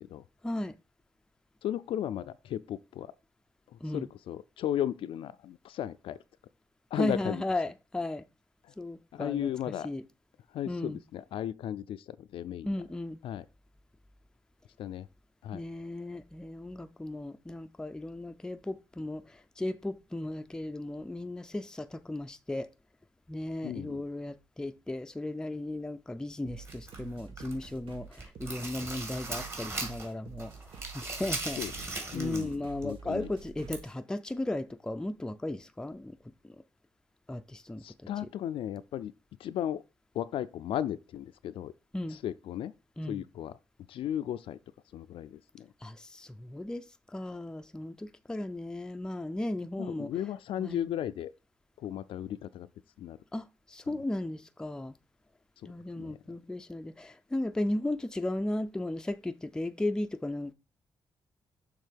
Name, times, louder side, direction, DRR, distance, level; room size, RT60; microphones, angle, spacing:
voice 1, 0.4-0.7 3.8-4.1 7.0-8.2 8.8-9.5 9.8-10.0 10.7-11.0 12.6-13.2 15.5-19.2 19.6-22.7 23.3-30.5 30.9-31.6 32.1-36.2 36.4-36.5 37.3-37.8 38.2-38.3 41.9-42.2 43.0-43.2 45.8-46.8 47.1-50.1 50.6-50.9 53.3-54.9 55.6-60.5, left 1 dB, 10° left, 0.4 m, -35 dB
voice 2, 1.6-3.1 3.9-6.2 6.9-7.4 9.1-9.9 10.5-12.7 13.2-13.4 14.8-15.1 15.4-15.6 23.6-24.0 31.6-31.7 32.1-33.3 37.8-39.1 39.4-39.8 40.1-41.7 42.1-42.7 43.0-43.5 43.9-44.6 44.9-45.7 49.8-51.3 51.8-52.7 53.0-53.2 53.9-54.0 55.6-56.2, left 11 dB, 85° left, 0.4 m, -35 dB
sound 1, 26.4-33.9, right 7 dB, 75° right, 1.4 m, -48 dB
sound 2, 26.6-27.7 28.1-30.1 30.4-32.5 32.8-32.9 33.7-33.8, right 2 dB, 30° right, 2.0 m, -38 dB
6.5 x 3.6 x 5.1 m
cardioid pair, 105°, 9 cm